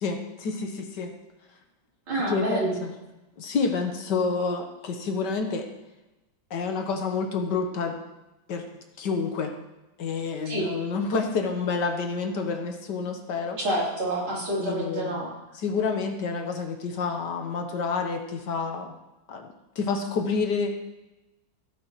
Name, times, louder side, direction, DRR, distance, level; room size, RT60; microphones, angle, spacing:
voice 1, 0.0-1.1 2.3-2.9 3.4-5.7 6.5-8.0 8.5-8.6 9.0-9.5 10.0-13.6 14.6-15.2 15.5-18.9 19.3-19.5 19.8-20.8, left 4 dB, 65° left, 4 dB, 1.6 m, -28 dB
voice 2, 2.1-2.7 10.5-10.7 13.6-15.3, right 1 dB, 90° right, -6 dB, 4.3 m, -28 dB
16.5 x 8.5 x 3.1 m, 1.0 s
omnidirectional pair, 2.2 m